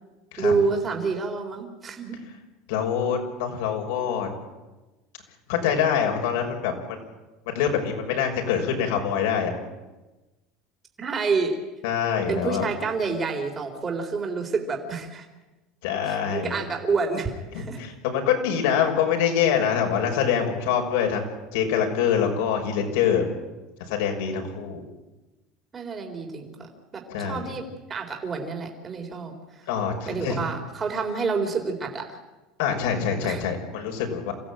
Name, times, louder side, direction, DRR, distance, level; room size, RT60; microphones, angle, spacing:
voice 1, 0.4-2.2 11.0-11.6 12.3-15.3 16.0-17.8 25.7-29.6 30.0-32.2 33.2-33.4, right 4 dB, 20° right, 2 dB, 3.7 m, -28 dB
voice 2, 2.7-4.3 5.5-7.0 7.5-9.5 11.8-12.7 15.8-16.6 17.8-21.2 21.5-23.2 23.9-24.8 27.1-27.4 29.7-30.4 32.6-34.3, left 7 dB, 80° left, 2 dB, 6.2 m, -25 dB
27.5 x 16.0 x 9.0 m, 1.1 s
cardioid pair, 150°, 0 cm